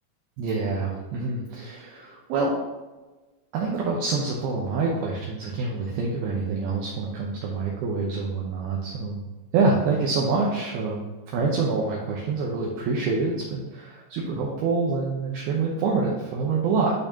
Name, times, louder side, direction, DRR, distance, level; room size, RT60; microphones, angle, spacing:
voice 1, 0.4-2.5 3.5-9.2 9.5-11.1 11.3-16.9, right 4 dB, 80° right, -3 dB, 2.2 m, -26 dB
12.0 x 4.4 x 2.8 m, 1.2 s
omnidirectional pair, 5.6 m